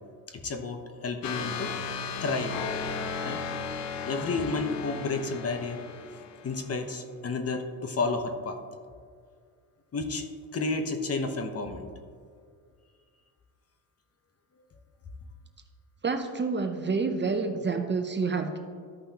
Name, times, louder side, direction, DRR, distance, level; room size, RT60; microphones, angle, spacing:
voice 1, 0.3-1.7 2.2-2.5 3.2-3.4 4.1-5.8 6.4-8.6 9.9-10.3 10.5-11.9, left 3 dB, 35° left, 6 dB, 1.0 m, -31 dB
sound 1, 1.2-6.8, left 5 dB, 80° left, 0.8 m, -35 dB
voice 2, 16.0-18.6, right 4 dB, 25° right, 6 dB, 0.8 m, -28 dB
14.0 x 5.5 x 2.9 m, 2.1 s
supercardioid pair, 80°, 42 cm